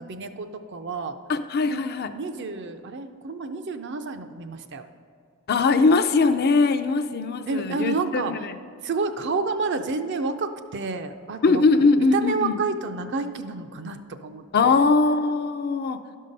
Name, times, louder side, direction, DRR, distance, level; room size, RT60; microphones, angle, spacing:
voice 1, 0.0-1.2 1.7-1.8 2.1-4.9 7.5-8.5 8.8-11.6 12.1-14.8, right 4 dB, 55° right, 8 dB, 0.5 m, -29 dB
voice 2, 1.3-2.1 5.5-8.5 11.4-12.6 14.5-16.0, left 4 dB, 45° left, 9 dB, 0.4 m, -21 dB
11.5 x 5.5 x 5.3 m, 2.3 s
head